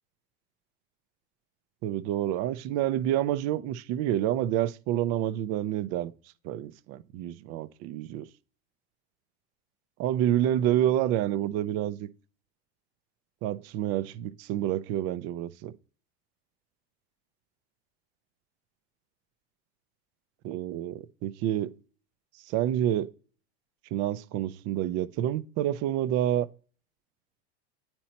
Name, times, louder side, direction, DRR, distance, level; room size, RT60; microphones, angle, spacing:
voice 1, 1.8-6.1 6.4-8.3 10.0-12.1 13.4-15.7 20.4-21.8 22.5-23.1 23.9-26.5, right 12 dB, 55° right, 0.5 m, -28 dB
8.8 x 2.9 x 4.2 m
supercardioid pair, 105°, 31 cm